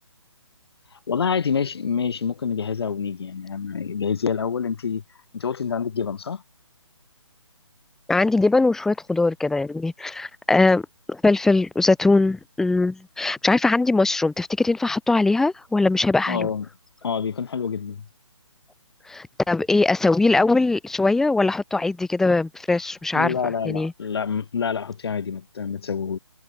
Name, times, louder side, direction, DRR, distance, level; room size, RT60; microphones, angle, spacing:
voice 1, 1.1-5.0 5.3-6.4 16.3-16.7 17.0-18.1 23.1-26.2, left 6 dB, 50° left, 3.6 m, -27 dB
voice 2, 8.1-10.8 11.1-16.5 19.1-23.4 23.6-23.9, left 3 dB, ahead, 1.0 m, -21 dB
figure-of-eight pair, 145°, 16 cm